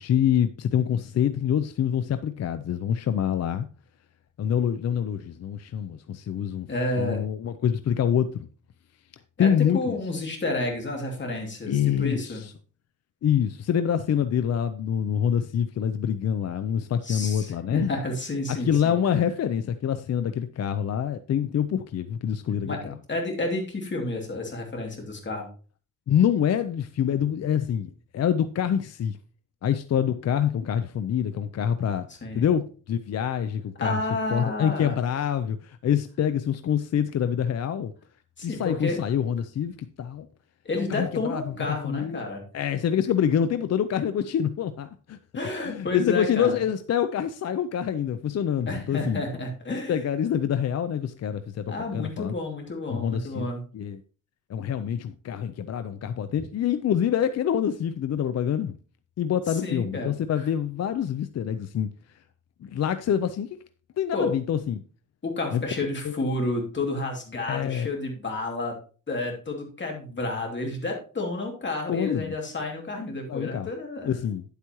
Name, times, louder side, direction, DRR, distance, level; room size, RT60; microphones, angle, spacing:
voice 1, 0.0-3.7 4.4-6.7 7.0-8.5 9.4-10.0 11.7-12.5 13.2-17.9 18.5-22.9 26.1-29.2 29.6-32.1 32.3-34.0 34.3-37.9 38.4-40.3 40.9-41.5 41.8-42.2 42.5-45.2 45.7-49.2 49.9-52.4 52.9-53.5 53.7-54.0 54.5-58.8 59.2-61.9 62.6-63.6 64.0-64.8 65.5-65.6 66.0-66.2 67.5-67.9 71.9-72.3 73.3-73.7 74.0-74.4, left 9 dB, 50° left, 0.5 m, -26 dB
voice 2, 6.7-7.2 9.4-12.4 17.0-18.9 22.6-25.5 32.2-32.5 33.8-35.0 38.4-39.0 40.6-42.4 45.3-46.6 48.7-50.0 51.7-53.6 59.5-60.5 64.1-64.3 65.2-68.8 69.1-74.1, left 2 dB, 35° left, 2.6 m, -30 dB
9.8 x 8.2 x 3.0 m
wide cardioid pair, 130°, 33 cm